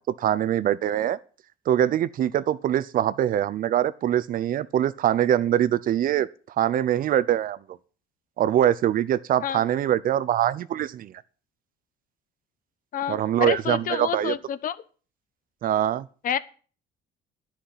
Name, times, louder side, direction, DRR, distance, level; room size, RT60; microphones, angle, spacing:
voice 1, 0.2-1.2 1.7-6.3 6.6-7.6 8.4-11.1 13.1-14.4 15.6-16.1, right 11 dB, 55° right, 0.7 m, -23 dB
voice 2, 12.9-14.8 16.2-16.4, left 9 dB, 55° left, 1.0 m, -28 dB
10.5 x 5.9 x 8.6 m
cardioid pair, 110°, 17 cm